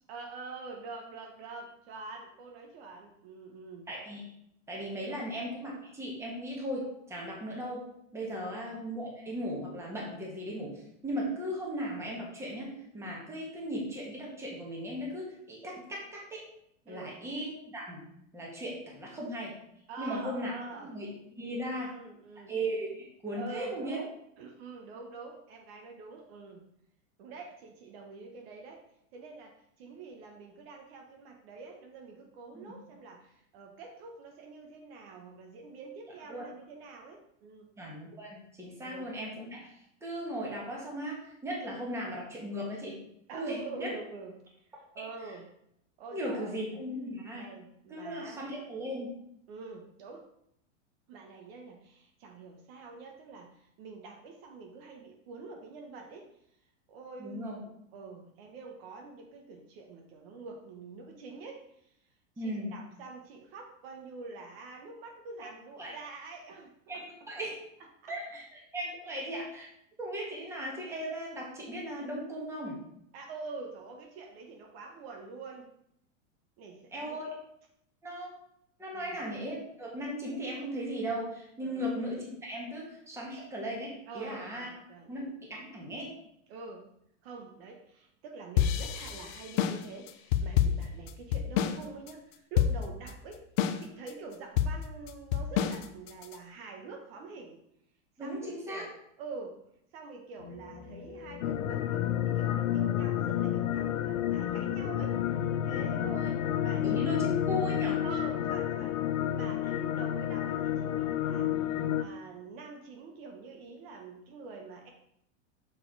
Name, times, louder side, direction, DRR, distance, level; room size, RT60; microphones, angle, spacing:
voice 1, 0.1-3.9 5.1-5.3 8.4-8.6 16.9-17.1 19.9-20.9 21.6-22.6 23.3-24.1 24.4-26.7 27.2-28.8 29.1-37.7 38.8-39.1 43.3-45.4 46.0-46.6 47.3-48.4 49.5-50.3 51.1-56.4 56.9-62.0 62.4-67.0 68.0-68.2 69.0-69.3 73.1-75.7 76.6-77.2 78.9-79.2 81.6-81.9 84.1-85.1 86.5-86.9 87.2-93.4 93.8-97.6 98.2-99.6 99.9-106.3 106.6-107.0 108.0-109.0 109.3-114.9, right 4 dB, 50° right, 2 dB, 1.1 m, -46 dB
voice 2, 3.9-4.2 4.7-16.4 16.8-19.6 20.0-20.5 20.8-22.0 22.5-24.0 32.5-32.7 36.3-36.4 37.8-43.0 43.3-43.9 46.1-47.5 47.9-49.2 57.2-57.6 62.4-62.8 65.4-65.5 65.8-65.9 66.9-67.6 68.1-69.7 70.0-72.8 76.9-77.3 78.0-78.3 78.8-84.7 85.1-86.1 98.2-98.8 105.9-106.3 106.8-108.0, equal, 5° right, -3 dB, 1.5 m, -37 dB
sound 1, 88.6-91.8 92.1-92.2 92.6-93.1 93.6-94.1 94.6-96.3, left 9 dB, 40° left, 0.4 m, -28 dB
sound 2, 100.4-107.1, left 4 dB, 20° left, 1.1 m, -48 dB
sound 3, 101.4-112.0, left 11 dB, 85° left, 0.7 m, -30 dB
6.3 x 4.7 x 4.6 m, 0.74 s
supercardioid pair, 155°, 39 cm